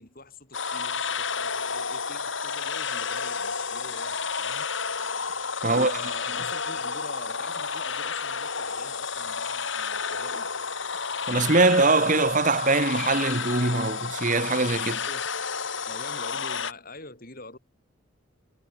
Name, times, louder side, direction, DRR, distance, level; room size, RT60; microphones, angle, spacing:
voice 1, 0.0-4.7 5.6-10.5 15.0-15.3 15.9-17.6, left 2 dB, 40° left, 5.7 m, -44 dB
sound 1, 0.5-16.7, left 5 dB, 60° left, 3.0 m, -31 dB
voice 2, 11.3-15.0, right 3 dB, 35° right, 1.5 m, -22 dB
head